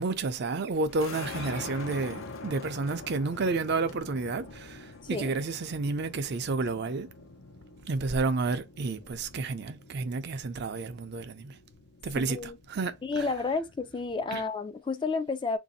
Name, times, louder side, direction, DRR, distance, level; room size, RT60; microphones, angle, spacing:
voice 1, 0.0-7.1 7.9-11.6 12.0-12.4 12.7-13.3 14.3-14.4, right 3 dB, 55° right, 0.5 m, -31 dB
sound 1, 0.9-14.4, left 3 dB, 85° left, 0.7 m, -45 dB
voice 2, 12.2-12.6 13.0-15.6, left 4 dB, 25° left, 0.3 m, -31 dB
3.0 x 2.6 x 4.0 m
head